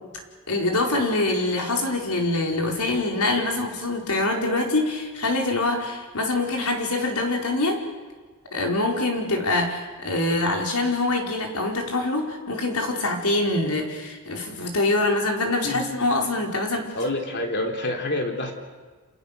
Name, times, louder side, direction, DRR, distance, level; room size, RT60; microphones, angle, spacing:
voice 1, 0.5-7.8 8.5-16.9, left 2 dB, 90° left, 1 dB, 4.8 m, -24 dB
voice 2, 16.9-18.5, left 1 dB, 50° left, 3 dB, 3.3 m, -27 dB
29.5 x 27.5 x 6.8 m, 1.4 s
head